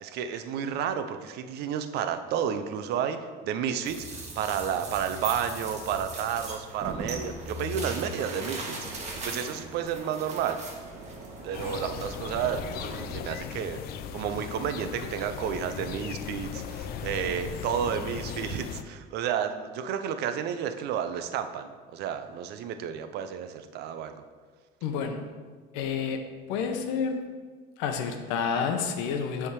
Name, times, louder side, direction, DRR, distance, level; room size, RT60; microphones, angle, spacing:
voice 1, 0.0-10.6 11.4-12.6 13.1-13.8 14.1-24.1, right 8 dB, 55° right, 9 dB, 0.6 m, -31 dB
sound 1, 3.8-13.0, right 2 dB, 35° right, 1.4 m, -38 dB
sound 2, 11.5-18.8, left 8 dB, 50° left, 0.4 m, -38 dB
voice 2, 24.8-25.2 25.7-26.2 26.5-27.2 27.8-29.5, left 6 dB, 75° left, 6 dB, 0.8 m, -29 dB
7.2 x 3.6 x 4.7 m, 1.5 s
cardioid pair, 120°, 20 cm